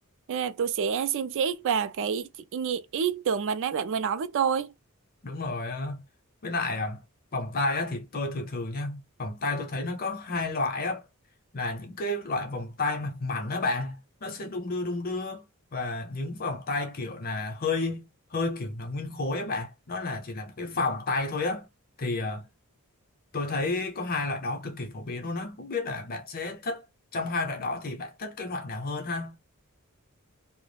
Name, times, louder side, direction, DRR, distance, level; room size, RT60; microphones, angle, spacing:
voice 1, 0.3-4.7, right 7 dB, 60° right, 0.3 m, -28 dB
voice 2, 5.2-6.0 6.4-7.0 7.3-11.0 11.5-15.4 15.7-21.7 22.0-22.5 23.3-26.8 27.1-29.3, left 3 dB, 45° left, 0.6 m, -31 dB
2.3 x 2.1 x 3.2 m
head